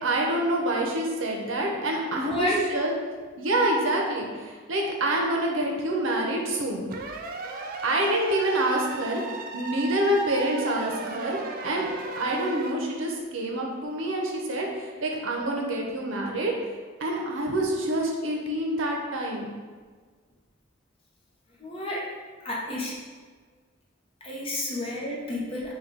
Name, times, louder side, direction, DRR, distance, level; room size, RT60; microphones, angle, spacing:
voice 1, 0.0-2.9 3.4-6.9 7.8-11.9 12.2-16.5 17.0-19.5 24.7-24.8, right 1 dB, 70° right, 0 dB, 0.6 m, -27 dB
voice 2, 2.1-2.6 21.6-22.1 22.4-23.0 24.2-25.7, left 1 dB, 25° left, -3 dB, 0.7 m, -30 dB
sound 1, 6.9-12.7, right 3 dB, 45° right, 0.3 m, -36 dB
3.7 x 2.3 x 4.5 m, 1.5 s
head